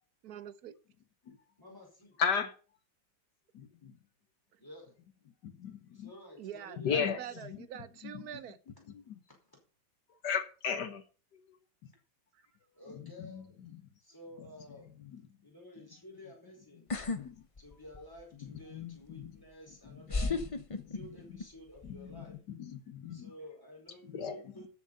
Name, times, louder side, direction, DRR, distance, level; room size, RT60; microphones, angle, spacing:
voice 1, 0.2-0.8 4.5-4.6 6.4-8.6 12.3-12.4, right 9 dB, 60° right, 1.1 m, -45 dB
voice 2, 1.6-2.2 4.6-4.9 5.9-7.1 9.3-9.6 12.7-13.6 14.0-14.9 15.4-16.9 17.6-20.4 20.9-22.4 23.1-24.7, equal, 10° left, 5.0 m, -52 dB
voice 3, 2.2-2.5 3.5-3.9 5.4-6.1 6.8-7.2 8.1-8.2 8.9-9.2 10.2-11.0 13.3-13.4 13.7-13.8 17.2-17.4 18.4-19.3 19.9-20.4 20.8-21.1 21.8-23.3 24.0-24.4, left 6 dB, 60° left, 1.7 m, -36 dB
sound 1, 16.9-17.2 17.6-18.2 19.2-19.3 20.1-21.5 21.8-22.2, left 3 dB, 35° left, 0.5 m, -33 dB
13.0 x 7.4 x 5.5 m
omnidirectional pair, 2.1 m